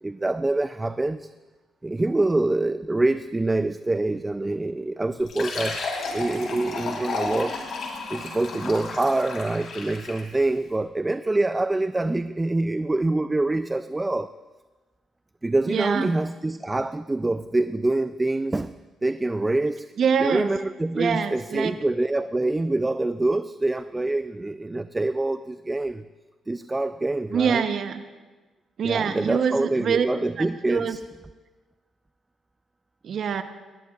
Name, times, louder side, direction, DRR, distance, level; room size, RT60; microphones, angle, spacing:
voice 1, 0.0-1.3 1.8-5.8 6.1-7.6 8.1-14.3 15.4-18.7 19.0-19.9 20.2-26.0 26.5-27.6 28.8-31.0, right 2 dB, 15° right, 12 dB, 0.3 m, -25 dB
Fill (with liquid), 5.2-10.3, left 3 dB, 65° left, 3.8 m, -33 dB
voice 2, 15.7-16.2 20.0-20.6 20.9-21.8 27.3-28.0 28.8-30.1 30.4-31.0 33.0-33.4, right 7 dB, 60° right, 9 dB, 0.8 m, -25 dB
19.5 x 18.0 x 2.4 m, 1.3 s
cardioid pair, 90°, 0 cm